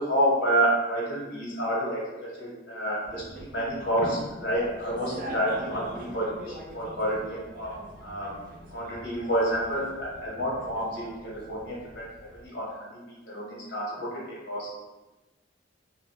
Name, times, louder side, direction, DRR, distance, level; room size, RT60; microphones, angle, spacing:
voice 1, 0.0-7.7 8.0-8.3 8.7-12.0 12.3-14.7, right 1 dB, 85° left, -5 dB, 1.1 m, -29 dB
sound 1, 3.0-12.5, equal, 45° right, 0.4 m, -44 dB
2.4 x 2.4 x 3.2 m, 1.1 s
head